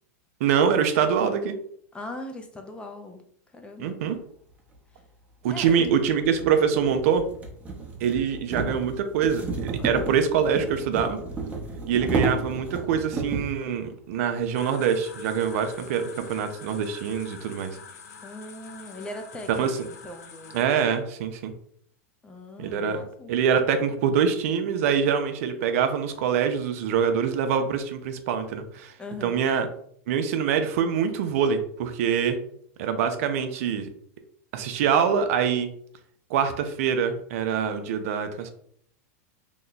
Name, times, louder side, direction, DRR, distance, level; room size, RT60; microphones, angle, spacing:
voice 1, 0.4-1.6 3.8-4.2 5.4-7.2 8.0-11.2 11.9-17.7 19.5-19.8 20.5-21.5 22.6-28.9 29.2-29.7 30.1-32.4 32.8-33.9 34.5-35.7 36.3-38.5, right 7 dB, 65° right, 8 dB, 0.5 m, -24 dB
voice 2, 1.9-3.2 3.5-4.0 5.5-5.9 9.8-10.2 18.2-20.6 22.2-23.3 29.0-29.4, left 1 dB, 10° left, 4 dB, 0.5 m, -40 dB
sound 1, 4.7-4.8 5.5-13.6, right 4 dB, 15° right, 0.8 m, -32 dB
sound 2, 14.5-20.6, left 6 dB, 90° left, 0.6 m, -46 dB
3.0 x 2.2 x 3.8 m, 0.65 s
hypercardioid pair, 125°, 8 cm